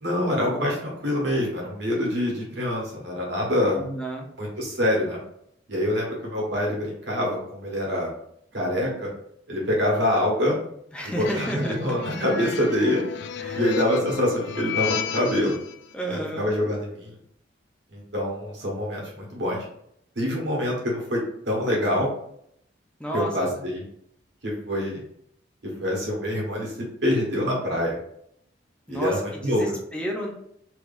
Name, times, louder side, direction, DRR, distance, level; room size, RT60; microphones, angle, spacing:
voice 1, 0.0-3.8 4.4-5.2 5.7-8.1 8.5-9.1 9.5-10.6 11.0-13.0 13.5-15.6 16.1-17.2 17.9-19.7 20.1-22.1 23.1-23.8 24.4-25.0 25.8-26.7 27.0-28.0 28.9-29.6, left 1 dB, 65° right, -3 dB, 1.3 m, -25 dB
voice 2, 3.7-4.3 10.9-12.3 13.4-13.6 15.9-16.5 23.0-23.6 28.9-30.3, right 1 dB, 5° left, 0 dB, 0.6 m, -32 dB
sound 1, 11.2-15.7, left 7 dB, 60° left, 0.3 m, -32 dB
3.3 x 3.2 x 2.5 m, 0.72 s
head